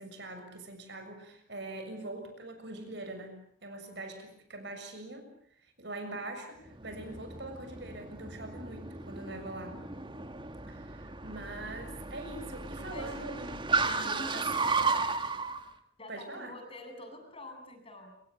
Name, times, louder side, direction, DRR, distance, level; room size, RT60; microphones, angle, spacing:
voice 1, 0.0-5.3 5.6-9.8 10.7-13.5 13.8-14.5 16.1-16.5, right 2 dB, 60° right, 7 dB, 7.0 m, -43 dB
Car, 6.7-15.6, right 4 dB, 25° right, 2.0 m, -34 dB
voice 2, 14.0-14.7 16.0-18.2, left 1 dB, 30° left, 5 dB, 7.6 m, -46 dB
27.0 x 25.0 x 8.5 m, 0.66 s
head